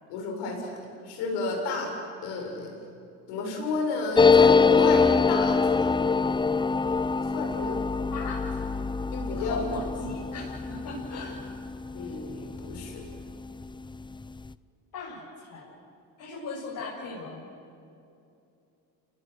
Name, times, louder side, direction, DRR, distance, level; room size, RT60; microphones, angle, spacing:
voice 1, 0.1-0.8 1.0-1.9 2.2-2.7 3.3-6.1 7.2-7.8 9.1-9.7 11.9-13.0, left 3 dB, 80° left, 1 dB, 6.7 m, -32 dB
sound 1, 4.2-13.3 13.6-13.7 13.9-14.5, left 5 dB, 10° left, 0.5 m, -24 dB
voice 2, 8.1-8.5 9.4-11.3 14.9-15.7 16.2-17.4, left 3 dB, 55° left, -5 dB, 7.6 m, -38 dB
30.0 x 19.5 x 8.0 m, 2.7 s
supercardioid pair, 90°, 40 cm